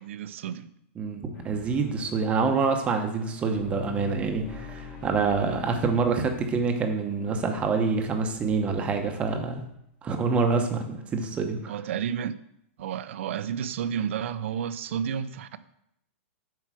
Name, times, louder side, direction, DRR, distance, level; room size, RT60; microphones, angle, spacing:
voice 1, 0.0-0.7 11.7-12.4 12.8-15.6, right 8 dB, 65° right, 0.5 m, -31 dB
voice 2, 1.0-9.6 10.0-11.7, right 4 dB, 15° right, 0.9 m, -26 dB
sound 1, 1.3-9.6, left 4 dB, 30° left, 1.5 m, -45 dB
7.5 x 4.7 x 6.2 m
supercardioid pair, 160°, 7 cm